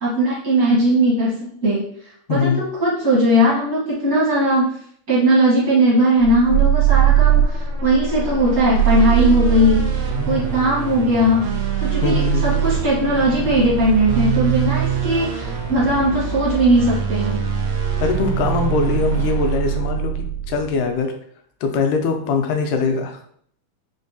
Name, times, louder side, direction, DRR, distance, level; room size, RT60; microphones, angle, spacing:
voice 1, 0.0-1.8 2.3-4.7 5.1-11.5 11.8-17.4, equal, 60° right, -8 dB, 0.9 m, -18 dB
voice 2, 2.3-2.6 10.2-10.4 12.0-12.5 18.0-21.1 21.6-23.2, left 5 dB, 85° left, 4 dB, 2.1 m, -22 dB
sound 1, 6.2-20.8, right 9 dB, 80° right, 1.6 m, -21 dB
5.3 x 2.2 x 2.6 m, 0.63 s
omnidirectional pair, 3.5 m